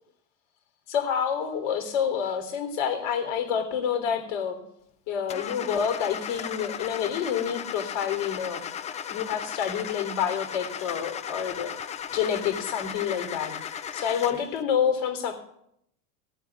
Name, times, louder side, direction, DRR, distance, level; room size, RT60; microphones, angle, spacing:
voice 1, 0.9-4.6 5.1-8.6 9.1-11.7 12.1-13.5 13.9-15.3, left 8 dB, 60° left, 5 dB, 3.6 m, -28 dB
Car / Engine starting, 5.3-14.6, left 8 dB, 15° left, 0.4 m, -36 dB
16.0 x 8.9 x 6.0 m, 0.75 s
supercardioid pair, 135°, 42 cm